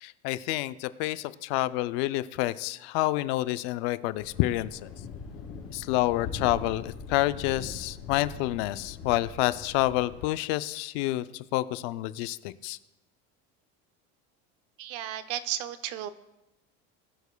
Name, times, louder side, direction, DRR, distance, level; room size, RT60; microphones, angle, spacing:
voice 1, 0.0-4.9 5.7-12.8, left 16 dB, 65° left, 14 dB, 0.5 m, -28 dB
Thunder, 4.1-10.2, left 4 dB, 45° left, 2.9 m, -41 dB
voice 2, 14.8-16.1, right 11 dB, 50° right, 12 dB, 0.5 m, -34 dB
20.5 x 7.0 x 2.2 m, 0.98 s
cardioid pair, 165°, 32 cm